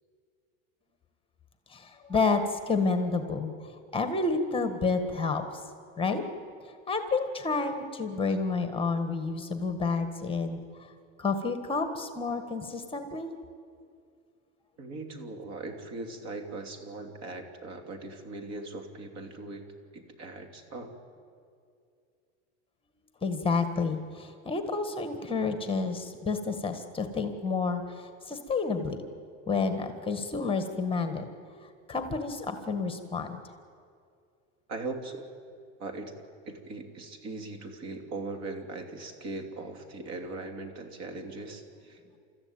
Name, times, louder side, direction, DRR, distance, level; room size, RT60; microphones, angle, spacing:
voice 1, 1.7-3.5 3.9-5.4 6.0-6.2 6.9-10.6 11.2-13.3 23.2-29.0 29.5-31.2 31.9-33.4, left 4 dB, 15° left, 7 dB, 1.7 m, -29 dB
voice 2, 14.8-19.6 19.9-20.9 34.7-35.3 35.8-36.1 36.4-42.2, right 3 dB, 55° right, 5 dB, 3.2 m, -40 dB
29.5 x 14.0 x 9.0 m, 2.4 s
supercardioid pair, 125°, 33 cm